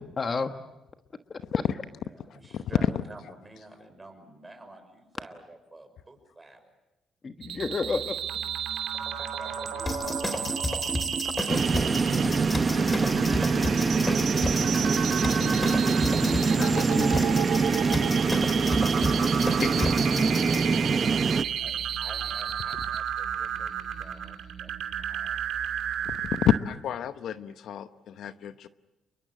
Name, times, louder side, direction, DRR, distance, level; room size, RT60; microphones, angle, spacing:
voice 1, 0.2-0.5 1.3-1.6 7.2-8.1 11.5-11.6 15.4-17.4 17.6-17.9 19.6-19.9, left 4 dB, 40° left, 7 dB, 1.3 m, -32 dB
voice 2, 2.1-6.8 9.0-11.1 21.6-24.7 25.0-25.6, right 2 dB, 20° right, 6 dB, 6.1 m, -49 dB
sound 1, 7.4-26.6, right 9 dB, 75° right, 2.5 m, -32 dB
sound 2, 9.9-20.6, left 1 dB, 20° left, 2.6 m, -32 dB
sound 3, 11.5-21.4, right 4 dB, 35° right, 0.9 m, -24 dB
voice 3, 26.0-28.7, left 9 dB, 70° left, 11 dB, 0.9 m, -29 dB
29.0 x 23.0 x 7.7 m, 0.99 s
cardioid pair, 90°, 0 cm